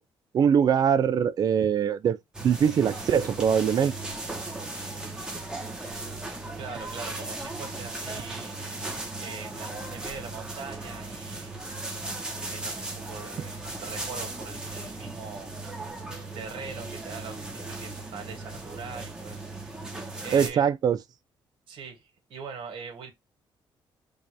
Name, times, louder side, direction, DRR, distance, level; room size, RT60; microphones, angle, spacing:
voice 1, 0.3-3.9 20.3-21.0, right 7 dB, 45° right, 0.5 m, -22 dB
sound 1, 2.3-20.5, right 2 dB, 10° right, 1.2 m, -37 dB
voice 2, 6.6-8.5 9.2-11.6 12.4-13.5 13.8-15.5 16.3-19.4 20.2-20.7 21.7-23.1, right 5 dB, 75° right, 2.2 m, -42 dB
5.4 x 2.7 x 3.4 m
cardioid pair, 140°, 9 cm